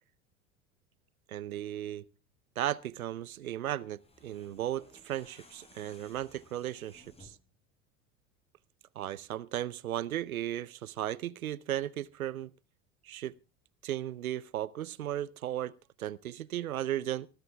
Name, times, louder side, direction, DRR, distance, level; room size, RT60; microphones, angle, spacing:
voice 1, 1.3-2.0 2.6-7.4 9.0-12.5 13.0-13.3 13.8-17.3, right 12 dB, 85° right, 0.7 m, -36 dB
sound 1, 3.9-7.5, left 2 dB, 15° left, 6.9 m, -59 dB
26.0 x 14.5 x 2.2 m
hypercardioid pair, 85°, 41 cm